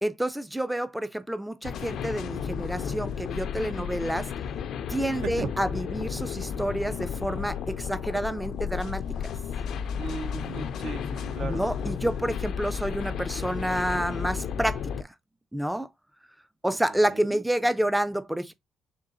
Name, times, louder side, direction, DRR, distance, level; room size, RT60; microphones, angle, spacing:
voice 1, 0.0-4.3 4.9-9.3 11.4-15.1 15.5-15.9 16.6-18.5, right 1 dB, 5° right, 0.3 m, -29 dB
sound 1, 1.6-15.0, left 7 dB, 70° left, 0.4 m, -33 dB
voice 2, 3.6-3.9 5.2-5.5 10.0-11.6 16.7-17.4, right 5 dB, 70° right, 0.7 m, -37 dB
4.0 x 3.8 x 2.4 m
cardioid pair, 90°, 0 cm